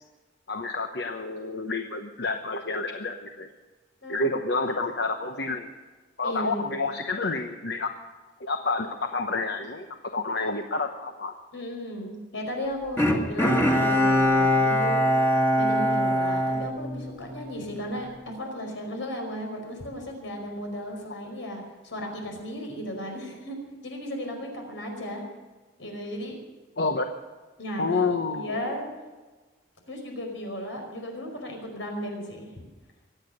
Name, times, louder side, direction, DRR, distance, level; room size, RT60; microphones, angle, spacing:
voice 1, 0.5-3.5 4.1-5.7 6.2-7.9 8.4-9.9 10.1-11.3 26.8-27.1 27.8-28.7, left 3 dB, 60° left, 6 dB, 1.0 m, -29 dB
voice 2, 4.0-4.4 6.2-6.8 11.5-18.1 18.4-23.6 23.8-25.2 25.8-26.4 27.6-28.9 29.9-32.5, equal, 80° left, 2 dB, 5.1 m, -35 dB
Bowed string instrument, 13.0-17.5 17.9-18.0, equal, 10° left, 1.7 m, -23 dB
23.5 x 9.0 x 6.6 m, 1.3 s
head